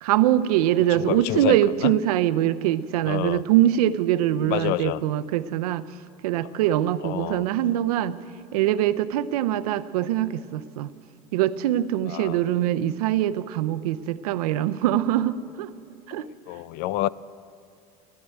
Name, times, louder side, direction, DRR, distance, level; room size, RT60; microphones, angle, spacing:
voice 1, 0.0-5.9 6.2-8.2 8.5-10.9 11.3-15.7 16.1-16.3, right 12 dB, 90° right, 12 dB, 0.6 m, -23 dB
voice 2, 1.0-1.6 1.8-1.9 3.1-3.4 4.5-5.0 7.0-7.4 12.1-12.4 16.5-17.1, left 16 dB, 55° left, 20 dB, 0.4 m, -27 dB
13.5 x 11.5 x 9.1 m, 2.4 s
supercardioid pair, 125°, 19 cm